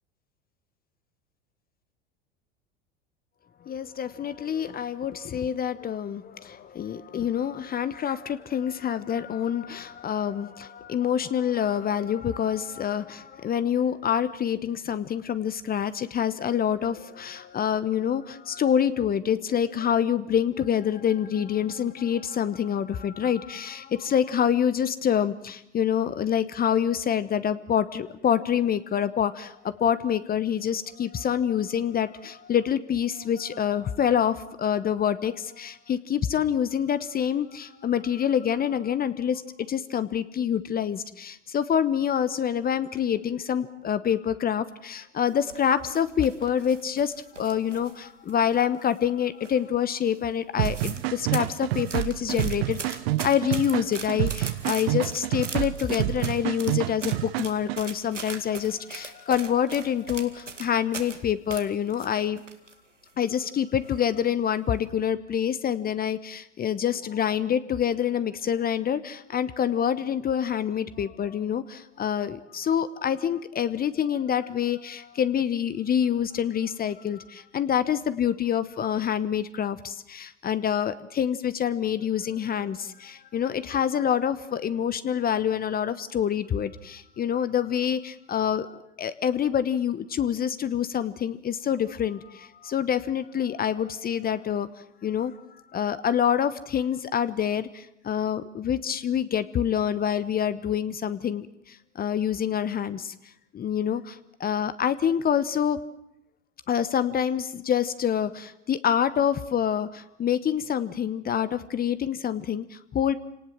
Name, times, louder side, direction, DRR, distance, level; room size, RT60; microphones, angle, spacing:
voice 1, 3.7-62.4 63.2-94.7 95.0-95.3 95.7-103.1 103.5-105.8 106.7-113.2, left 9 dB, 25° left, 14 dB, 1.1 m, -26 dB
sound 1, 45.3-48.0 48.3-49.1 49.4-49.8 50.1-50.2 50.4-51.1 51.3-61.2 61.5-62.7 63.1-63.2 63.8-64.2 64.6-64.8, right 4 dB, 90° right, 2.4 m, -40 dB
sound 2, 50.6-57.8, right 18 dB, 55° right, 0.8 m, -28 dB
29.0 x 18.5 x 7.5 m, 0.80 s
figure-of-eight pair, 85°, 36 cm